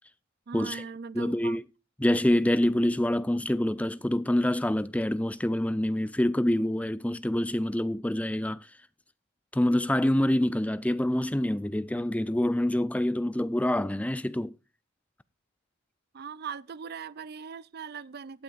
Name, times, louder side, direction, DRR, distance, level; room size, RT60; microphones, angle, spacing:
voice 1, 0.5-1.6 16.1-18.4, right 6 dB, 50° right, 0.5 m, -40 dB
voice 2, 1.1-1.6 2.0-8.7 9.5-14.5, left 1 dB, 5° left, 0.5 m, -26 dB
16.5 x 8.8 x 2.5 m
head